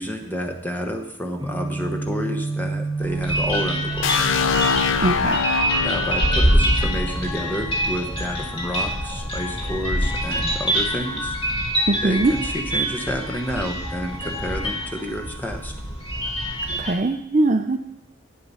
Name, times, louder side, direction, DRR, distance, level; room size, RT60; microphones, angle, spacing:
voice 1, 0.0-4.1 5.8-11.4 12.0-15.7, equal, 10° left, 3 dB, 1.0 m, -30 dB
Guitar, 1.4-9.2, right 3 dB, 20° right, 4.2 m, -32 dB
sound 1, 3.0-16.9, equal, 30° left, 2.2 m, -25 dB
sound 2, 4.0-7.9, left 6 dB, 80° left, 0.4 m, -24 dB
voice 2, 5.0-5.5 11.9-12.3 16.8-17.8, right 2 dB, 40° right, 7 dB, 0.5 m, -21 dB
9.2 x 7.7 x 5.6 m, 0.77 s
head